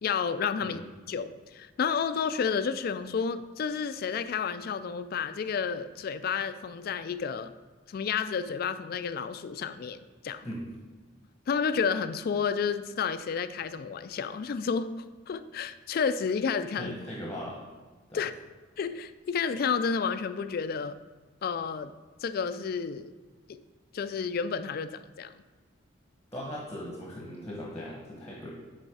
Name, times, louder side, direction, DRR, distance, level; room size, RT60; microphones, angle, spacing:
voice 1, 0.0-0.8 1.1-7.5 7.9-10.5 11.5-14.9 15.3-16.9 18.1-18.3 18.8-21.0 21.4-21.9 22.2-23.1 23.5-23.6 23.9-25.3, left 6 dB, 50° left, 12 dB, 0.3 m, -31 dB
voice 2, 16.7-17.6 18.1-18.2 26.3-28.5, equal, 15° left, -3 dB, 1.0 m, -39 dB
7.8 x 4.1 x 4.9 m, 1.3 s
head